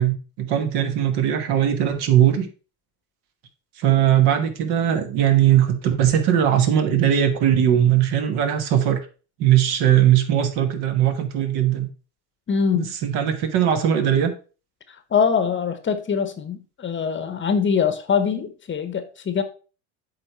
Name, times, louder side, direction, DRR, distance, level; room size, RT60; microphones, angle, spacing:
voice 1, 0.0-2.5 3.8-9.0 9.4-11.9 12.7-14.3, right 10 dB, 60° right, 1.4 m, -19 dB
voice 2, 12.5-12.9 15.1-19.4, left 6 dB, 25° left, 0.9 m, -23 dB
8.2 x 3.5 x 4.5 m
supercardioid pair, 90°, 44 cm